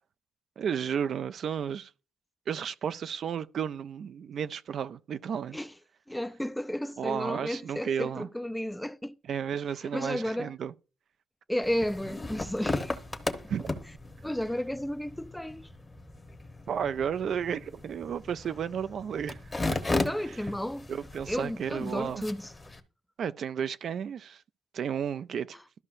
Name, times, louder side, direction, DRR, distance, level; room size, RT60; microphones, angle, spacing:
voice 1, 0.6-1.9 2.5-5.6 7.0-8.3 9.3-10.7 13.5-13.7 16.7-19.4 19.7-19.8 20.3-20.4 20.9-22.2 23.2-24.4 24.7-25.6, right 8 dB, 60° right, 0.4 m, -33 dB
voice 2, 6.1-9.2 9.9-10.5 11.5-13.0 14.2-15.7 20.0-20.9 21.3-22.5, equal, 5° left, 0.4 m, -33 dB
sound 1, 11.6-22.8, left 2 dB, 20° left, 1.0 m, -36 dB
13.0 x 5.4 x 2.6 m
cardioid pair, 90°, 0 cm